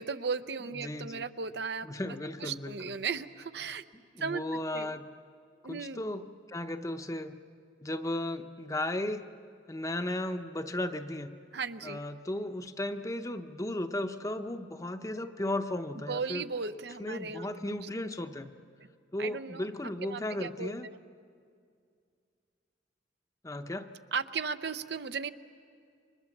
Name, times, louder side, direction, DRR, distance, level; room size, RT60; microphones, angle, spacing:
voice 1, 0.0-3.8 4.2-4.4 4.7-4.9 5.6-6.0 11.5-12.0 16.1-17.5 17.8-17.9 19.2-19.6 20.0-21.0 24.1-25.3, right 5 dB, 65° right, 11 dB, 0.7 m, -36 dB
voice 2, 0.8-1.3 1.8-3.0 4.1-5.0 5.6-7.4 7.8-9.2 9.7-11.3 11.8-16.4 17.0-18.5 19.1-20.9 23.4-23.9, left 1 dB, 20° left, 8 dB, 0.8 m, -35 dB
29.5 x 24.5 x 7.3 m, 2.3 s
head